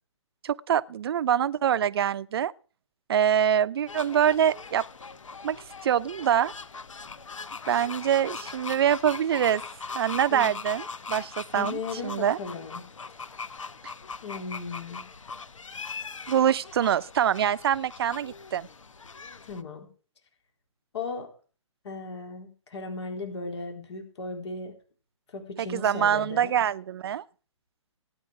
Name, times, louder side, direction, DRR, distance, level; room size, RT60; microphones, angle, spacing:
voice 1, 0.4-2.5 3.1-4.8 5.4-5.6 5.8-6.5 7.7-9.6 9.9-11.8 12.0-12.4 16.3-18.7 25.6-27.2, right 9 dB, 50° right, 0.7 m, -24 dB
sound 1, 3.9-19.6, left 4 dB, 75° left, 1.1 m, -40 dB
voice 2, 11.6-12.8 14.2-15.1 19.5-19.9 20.9-21.3 21.8-24.7 25.3-26.5, left 4 dB, 60° left, 4.0 m, -36 dB
18.0 x 9.8 x 4.9 m
figure-of-eight pair, 135°, 16 cm